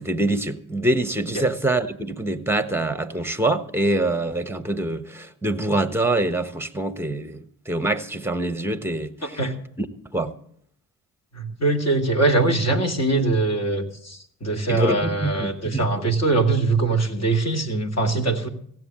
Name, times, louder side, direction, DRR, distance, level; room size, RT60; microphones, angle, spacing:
voice 1, 0.0-9.4 9.8-9.9 10.1-10.3 14.7-16.1, right 2 dB, 5° right, 1.2 m, -25 dB
voice 2, 9.2-9.5 11.3-18.5, right 3 dB, 35° left, 2.3 m, -22 dB
16.0 x 7.8 x 7.6 m
hypercardioid pair, 45°, 43 cm